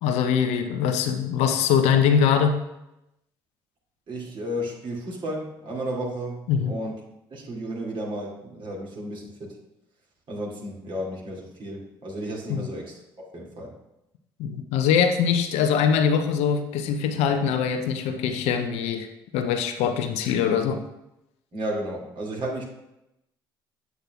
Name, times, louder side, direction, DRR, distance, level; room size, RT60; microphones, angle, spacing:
voice 1, 0.0-2.6 6.5-6.8 12.5-12.7 14.4-19.1 19.3-20.8, left 7 dB, 65° left, 7 dB, 0.7 m, -22 dB
voice 2, 4.1-6.4 6.7-6.9 7.3-9.5 10.3-13.0 13.3-13.7 21.5-22.7, right 1 dB, 45° right, -2 dB, 2.6 m, -33 dB
8.2 x 7.6 x 2.4 m, 0.87 s
hypercardioid pair, 55°, 12 cm